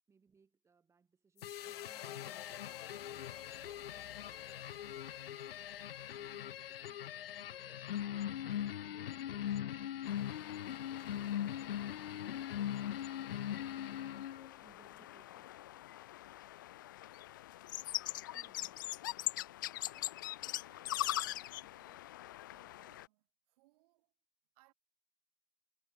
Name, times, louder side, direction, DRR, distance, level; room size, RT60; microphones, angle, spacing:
voice 1, 0.1-4.7 6.1-8.3 8.8-10.3 10.7-14.1 14.6-15.8 18.3-18.8, right 5 dB, 10° right, 4.0 m, -68 dB
sound 1, 1.4-14.6, left 11 dB, 60° left, 0.9 m, -41 dB
sound 2, 1.4-7.8, left 16 dB, 35° left, 1.1 m, -54 dB
sound 3, 10.0-23.1, left 15 dB, 20° left, 0.4 m, -43 dB
voice 2, 19.8-24.1 24.5-24.7, right 21 dB, 35° right, 5.9 m, -71 dB
hypercardioid pair, 145°, 32 cm